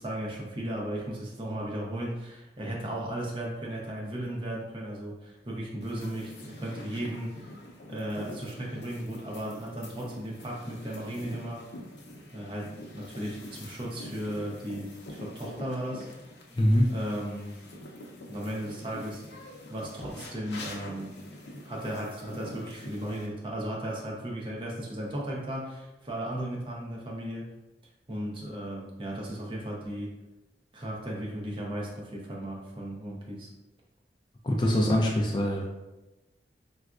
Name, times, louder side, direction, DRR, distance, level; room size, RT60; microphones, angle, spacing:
voice 1, 0.0-7.6 7.9-11.6 12.3-16.1 16.9-17.6 18.3-19.2 19.7-21.1 21.6-27.5 28.1-30.1 30.7-33.5, right 1 dB, 30° right, -2 dB, 0.6 m, -35 dB
sound 1, 5.8-23.3, left 1 dB, 80° left, 0.6 m, -45 dB
voice 2, 16.6-16.9 34.4-35.7, equal, 25° left, -1 dB, 0.3 m, -23 dB
3.9 x 2.3 x 2.3 m, 1.0 s
head